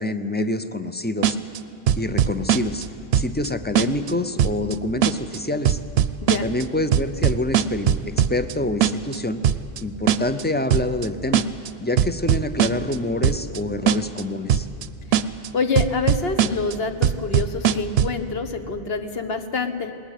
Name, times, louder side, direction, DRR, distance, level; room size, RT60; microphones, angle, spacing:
voice 1, 0.0-1.4 2.0-2.9 3.1-5.8 6.4-9.4 9.8-11.5 11.8-14.7, left 2 dB, 15° left, 10 dB, 0.4 m, -26 dB
sound 1, 1.2-1.6 1.9-2.9 3.1-3.5 3.8-4.1 4.4-4.7 5.0-5.4 5.7-6.6 6.9-8.5 8.8-9.2 9.4-9.8 10.1-10.4 10.7-11.1 11.3-11.7 12.0-13.0 13.2-13.6 13.9-14.2 14.5-14.9 15.1-15.5 15.8-16.7 17.0-18.2, right 9 dB, 70° right, 0.9 m, -20 dB
voice 2, 15.5-20.0, left 4 dB, 60° left, 8 dB, 1.4 m, -26 dB
19.5 x 19.5 x 8.3 m, 2.6 s
omnidirectional pair, 1.2 m